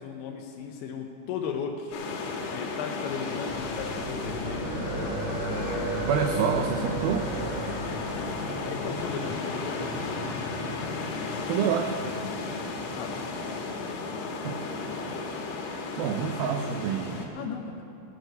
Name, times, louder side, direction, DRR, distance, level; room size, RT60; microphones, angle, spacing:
voice 1, 0.0-2.0 2.5-4.8 8.6-9.9 13.0-13.2 13.4-13.6 13.8-14.0 17.3-17.8, left 6 dB, 85° left, 2 dB, 3.1 m, -36 dB
sound 1, 1.9-17.3, left 4 dB, 70° left, 3.2 m, -35 dB
sound 2, 3.0-14.4, equal, 70° right, 4.5 m, -42 dB
sound 3, 3.5-8.5, right 1 dB, 40° right, 4.3 m, -33 dB
voice 2, 6.1-7.3 11.5-12.0 14.4-14.6 16.0-17.4, right 7 dB, 90° right, 5 dB, 2.1 m, -27 dB
17.0 x 6.4 x 8.0 m, 2.7 s
omnidirectional pair, 5.0 m